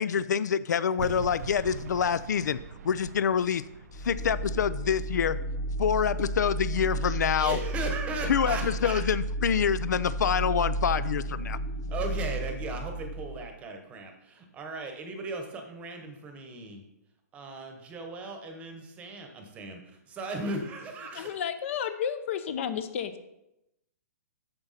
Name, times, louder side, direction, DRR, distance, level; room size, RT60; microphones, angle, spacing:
voice 1, 0.0-2.6 2.8-3.6 3.9-5.4 5.8-7.6 8.3-11.6, left 7 dB, 85° left, 16 dB, 0.4 m, -26 dB
sound 1, 1.0-6.2, right 8 dB, 65° right, 0.4 m, -43 dB
sound 2, 3.9-13.5, right 2 dB, 20° left, 0.8 m, -33 dB
voice 2, 7.0-9.0 11.9-16.8 17.3-21.4, right 3 dB, 15° right, 4 dB, 1.0 m, -37 dB
voice 3, 21.1-23.3, left 8 dB, 45° left, 11 dB, 0.8 m, -32 dB
8.8 x 7.0 x 4.1 m, 0.87 s
hypercardioid pair, 160°, 9 cm